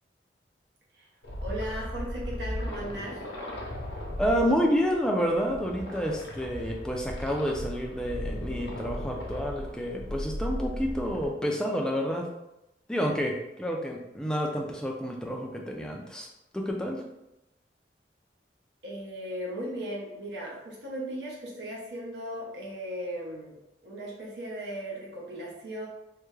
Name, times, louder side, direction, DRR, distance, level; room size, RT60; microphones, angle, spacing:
sound 1, 1.2-11.3, equal, 70° left, 0.7 m, -37 dB
voice 1, 1.4-3.2 18.8-23.6 23.8-25.9, equal, 75° right, -3 dB, 0.9 m, -37 dB
voice 2, 4.2-12.3 12.9-16.3 16.5-17.0, equal, 5° left, 0 dB, 0.4 m, -29 dB
3.4 x 2.2 x 3.1 m, 0.90 s
head